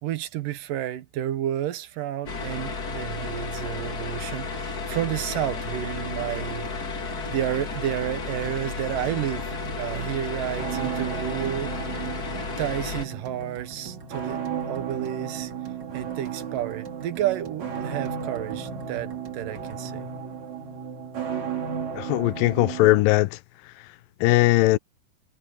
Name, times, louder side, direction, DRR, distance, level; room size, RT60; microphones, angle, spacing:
voice 1, 0.0-6.7 7.3-11.7 12.6-14.4 14.7-15.5 15.9-20.1, right 12 dB, 80° right, 2.8 m, -31 dB
sound 1, 2.3-13.1, left 4 dB, 35° left, 1.8 m, -33 dB
sound 2, 6.1-20.1, right 5 dB, 35° right, 2.1 m, -46 dB
sound 3, 9.3-23.0, right 7 dB, 55° right, 4.3 m, -34 dB
voice 2, 22.0-23.3 24.2-24.8, left 19 dB, 90° left, 2.3 m, -19 dB
omnidirectional pair, 3.9 m